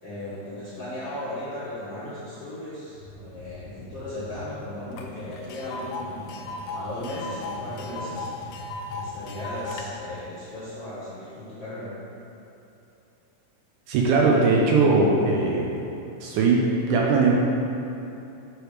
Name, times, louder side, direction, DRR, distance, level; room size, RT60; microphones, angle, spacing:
voice 1, 0.0-8.3 8.9-11.9, left 1 dB, 60° left, -13 dB, 1.2 m, -36 dB
sound 1, 2.9-10.2, left 1 dB, 55° right, 2.0 m, -43 dB
Tick, 5.0-5.1 5.3-9.8, left 3 dB, 90° left, 2.3 m, -36 dB
voice 2, 13.9-15.7 16.2-17.3, right 3 dB, 80° right, -2 dB, 2.0 m, -20 dB
8.1 x 3.2 x 4.8 m, 2.9 s
omnidirectional pair, 3.9 m